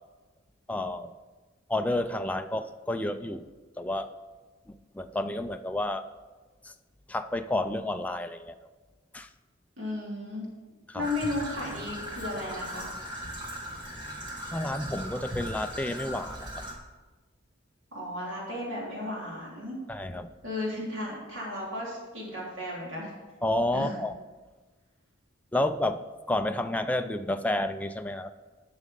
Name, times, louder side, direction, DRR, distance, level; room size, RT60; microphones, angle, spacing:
voice 1, 0.7-1.1 1.7-3.5 3.8-4.1 4.9-6.1 6.6-6.7 7.1-8.6 9.1-9.3 10.9-11.1 14.5-16.4 19.9-20.3 23.4-24.2 25.5-26.0 26.3-28.3, left 1 dB, 5° left, 7 dB, 0.4 m, -30 dB
voice 2, 9.8-10.5 10.9-12.9 17.9-19.8 20.4-23.1 23.7-24.0, left 1 dB, 65° right, -5 dB, 3.5 m, -34 dB
Traffic noise roadway noise / Trickle dribble, 11.0-16.7, equal, 25° right, 1.7 m, -38 dB
12.0 x 6.3 x 5.2 m, 1.3 s
head